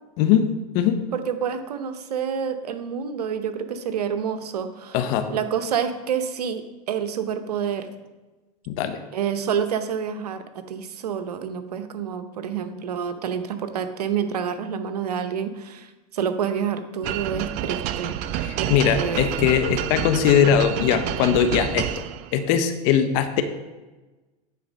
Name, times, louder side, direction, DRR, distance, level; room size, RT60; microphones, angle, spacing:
voice 1, 0.2-0.5 0.7-1.0 4.9-5.3 8.7-9.0 18.4-21.9 22.3-23.4, left 8 dB, 60° left, 8 dB, 0.9 m, -20 dB
voice 2, 1.1-5.0 5.3-7.9 9.1-18.1 18.6-19.4, right 7 dB, 85° right, 9 dB, 0.8 m, -28 dB
sound 1, 17.0-22.4, right 11 dB, 50° right, 0.5 m, -29 dB
9.4 x 4.2 x 5.2 m, 1.2 s
hypercardioid pair, 100°, 20 cm